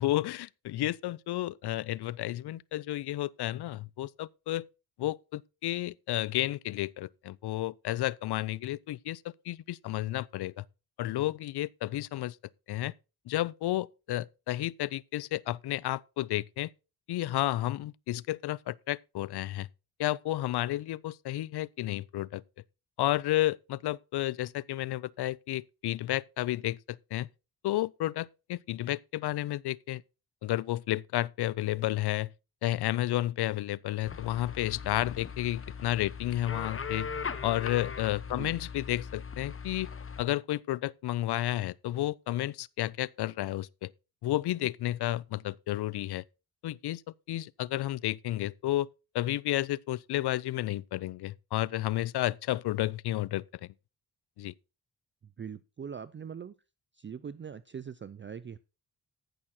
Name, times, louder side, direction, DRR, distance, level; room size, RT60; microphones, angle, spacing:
voice 1, 0.0-4.7 5.0-10.6 11.0-12.4 12.7-12.9 13.3-16.7 17.1-19.7 20.0-22.4 23.0-27.3 27.6-30.0 30.4-32.3 32.6-37.1 37.4-39.9 40.2-43.9 44.2-46.2 46.6-47.0 47.3-48.9 49.1-53.7 54.4-54.5, left 15 dB, 80° left, 0.5 m, -32 dB
sound 1, 34.1-40.2, left 6 dB, 35° left, 0.9 m, -39 dB
voice 2, 55.4-56.5 56.9-58.6, right 7 dB, 30° right, 0.5 m, -42 dB
14.5 x 6.2 x 4.2 m
cardioid pair, 100°, 39 cm